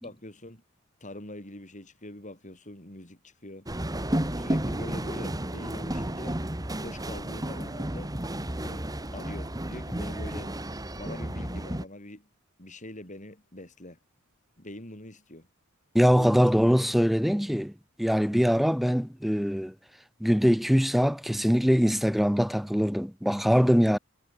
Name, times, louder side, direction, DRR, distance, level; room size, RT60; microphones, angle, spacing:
voice 1, 0.0-0.6 1.0-3.7 4.4-6.4 6.7-8.1 8.6-8.8 9.1-10.5 10.9-12.3 12.6-14.0 14.6-15.5 16.1-16.5, left 1 dB, 35° left, 8.0 m, -44 dB
sound 1, 3.7-11.8, right 1 dB, 20° right, 2.1 m, -32 dB
voice 2, 15.9-17.7 18.0-19.7 20.2-24.0, equal, ahead, 0.8 m, -23 dB
head